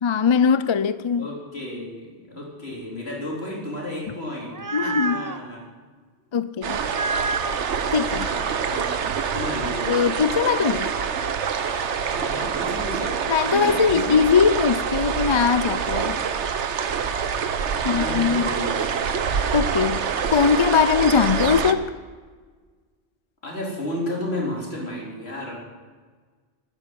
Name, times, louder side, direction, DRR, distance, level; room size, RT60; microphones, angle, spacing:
voice 1, 0.0-1.3 4.7-5.2 6.3-6.8 7.9-8.3 9.9-11.0 13.3-16.2 17.8-18.5 19.5-20.0 20.3-21.9, left 6 dB, 45° left, 14 dB, 0.4 m, -21 dB
voice 2, 1.1-5.6 8.0-8.9 9.3-10.0 12.1-13.2 13.5-14.2 17.8-19.1 23.4-25.6, left 1 dB, 60° left, -2 dB, 4.1 m, -32 dB
sound 1, 4.3-5.4 6.8-7.8 10.6-11.3, right 3 dB, 30° right, 0.4 m, -30 dB
sound 2, 6.6-21.7, right 6 dB, 75° right, 1.2 m, -26 dB
12.0 x 9.9 x 9.2 m, 1.5 s
omnidirectional pair, 1.2 m